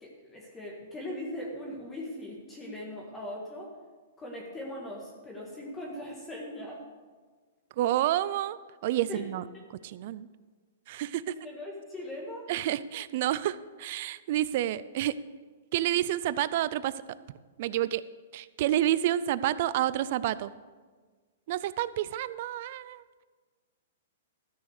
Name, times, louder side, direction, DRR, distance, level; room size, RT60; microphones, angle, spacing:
voice 1, 0.0-3.7 4.2-6.8 9.1-9.2 9.5-9.6 10.9-12.5, left 1 dB, 15° left, -3 dB, 1.7 m, -40 dB
voice 2, 7.8-9.4 9.8-10.3 10.9-11.2 12.5-15.2 15.7-16.9 17.6-18.0 18.3-20.5 21.5-23.0, right 13 dB, 50° right, 16 dB, 0.5 m, -29 dB
13.5 x 6.4 x 6.6 m, 1.4 s
hypercardioid pair, 150°, 0 cm